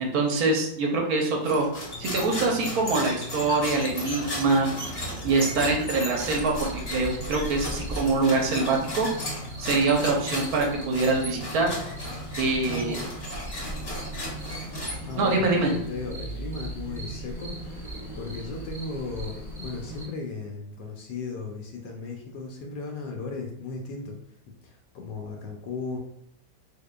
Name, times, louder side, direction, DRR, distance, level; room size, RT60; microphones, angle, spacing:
voice 1, 0.0-1.7 2.0-4.7 5.0-9.1 9.6-11.7 12.4-13.0 15.2-15.7, right 3 dB, 65° right, 1 dB, 1.0 m, -24 dB
sound 1, 1.4-15.4, left 1 dB, 40° left, 1.0 m, -35 dB
sound 2, 6.1-20.1, right 1 dB, ahead, 0.8 m, -38 dB
voice 2, 12.5-13.1 15.0-24.2 24.6-26.0, left 3 dB, 80° left, 2 dB, 1.2 m, -36 dB
3.6 x 3.6 x 2.2 m, 0.79 s
omnidirectional pair, 2.0 m